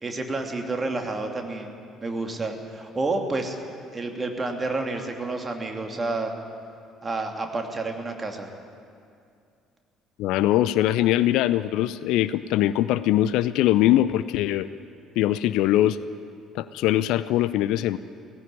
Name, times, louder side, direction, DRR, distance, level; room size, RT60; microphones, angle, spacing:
voice 1, 0.0-3.6 3.9-6.3 7.0-8.5, right 3 dB, 25° right, 4 dB, 2.6 m, -29 dB
voice 2, 10.2-14.7 15.2-16.0 16.5-18.0, left 13 dB, 60° left, 16 dB, 0.5 m, -22 dB
17.0 x 16.0 x 9.8 m, 2.4 s
figure-of-eight pair, 50°, 0 cm